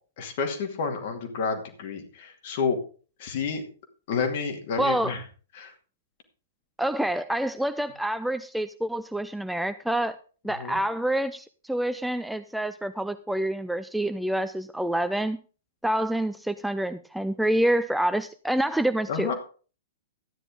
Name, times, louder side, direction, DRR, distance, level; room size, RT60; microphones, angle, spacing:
voice 1, 0.2-2.8 3.2-3.6 4.1-5.2 5.5-5.7 10.5-10.8 19.1-19.3, left 5 dB, 45° left, 5 dB, 2.4 m, -30 dB
voice 2, 4.8-5.1 6.8-10.2 10.4-15.4 15.8-19.3, right 1 dB, ahead, 11 dB, 0.4 m, -27 dB
13.0 x 10.0 x 3.7 m, 0.38 s
figure-of-eight pair, 105°, 0 cm